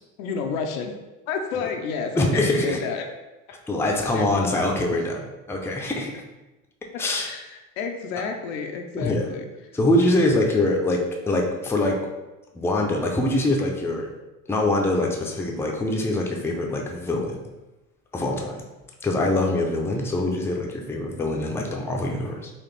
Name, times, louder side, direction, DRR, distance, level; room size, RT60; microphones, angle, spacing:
voice 1, 0.2-0.9 1.3-3.1 4.1-4.3 7.2-9.4, left 5 dB, 75° left, 4 dB, 0.7 m, -30 dB
voice 2, 2.1-2.8 3.7-6.1 7.0-7.3 8.9-9.3 9.7-11.0 11.3-12.0 12.5-14.1 14.5-17.4 18.1-18.6 19.0-22.5, left 1 dB, 5° left, 0 dB, 0.5 m, -24 dB
4.2 x 2.5 x 3.2 m, 1.1 s
hypercardioid pair, 90°, 41 cm